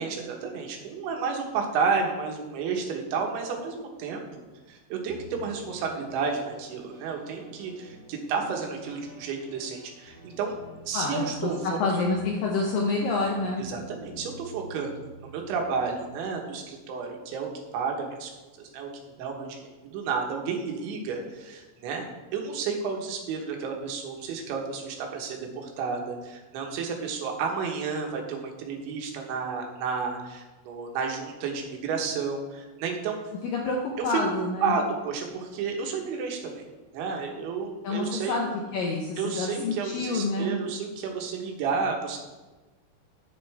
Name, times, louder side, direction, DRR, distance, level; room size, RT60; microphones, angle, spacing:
voice 1, 0.0-4.3 4.7-10.5 10.9-11.6 11.9-12.0 13.6-14.9 15.2-18.3 18.6-18.9 19.2-22.1 22.3-33.2 34.1-34.2 34.6-36.6 36.9-38.4 39.2-42.2, right 5 dB, 90° right, 2 dB, 3.6 m, -31 dB
sound 1, 5.1-16.2, right 2 dB, 30° right, 1.5 m, -49 dB
voice 2, 10.9-13.6 33.4-34.8 37.8-40.5, left 3 dB, 80° left, -1 dB, 2.0 m, -28 dB
10.5 x 8.9 x 3.4 m, 1.2 s
omnidirectional pair, 5.2 m